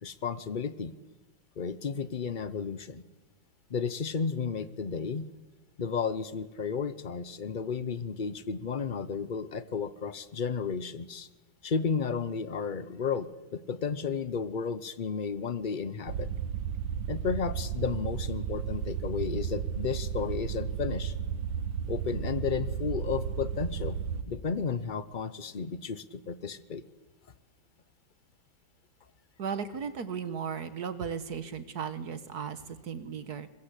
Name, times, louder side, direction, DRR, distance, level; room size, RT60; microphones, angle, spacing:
voice 1, 0.0-0.9 1.6-3.0 3.7-5.3 5.8-11.3 11.6-16.3 17.1-21.1 21.9-24.0 24.3-26.8, left 6 dB, 55° left, 14 dB, 0.5 m, -33 dB
sound 1, 16.1-24.2, right 8 dB, 70° right, 1.9 m, -33 dB
voice 2, 29.4-33.5, right 6 dB, 55° right, 13 dB, 1.6 m, -36 dB
23.5 x 21.5 x 8.4 m, 1.1 s
omnidirectional pair, 2.2 m